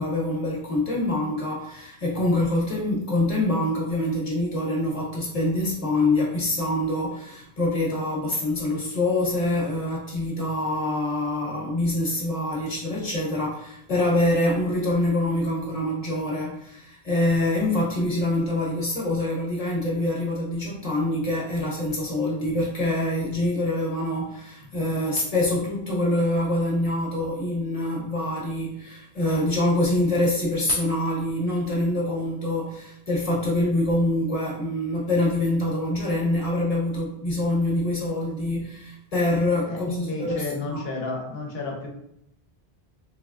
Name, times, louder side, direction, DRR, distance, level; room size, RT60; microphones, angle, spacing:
voice 1, 0.0-40.8, left 1 dB, 35° left, -4 dB, 1.2 m, -25 dB
voice 2, 39.7-41.9, left 2 dB, 70° left, 0 dB, 1.1 m, -31 dB
3.7 x 3.2 x 2.4 m, 0.76 s
omnidirectional pair, 1.0 m